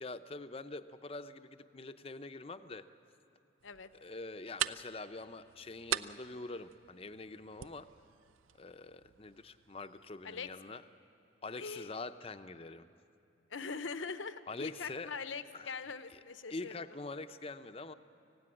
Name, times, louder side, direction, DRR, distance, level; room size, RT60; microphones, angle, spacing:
voice 1, 0.0-2.9 4.0-7.9 8.6-10.8 11.4-12.9 14.5-15.1 15.5-15.8 16.1-16.2 16.5-17.9, left 3 dB, 30° left, 10 dB, 0.6 m, -45 dB
sound 1, 3.6-10.6, right 10 dB, 85° right, 0.5 m, -43 dB
voice 2, 11.6-11.9 13.5-16.7, left 5 dB, 75° left, 11 dB, 0.8 m, -42 dB
24.5 x 16.5 x 9.8 m, 2.7 s
head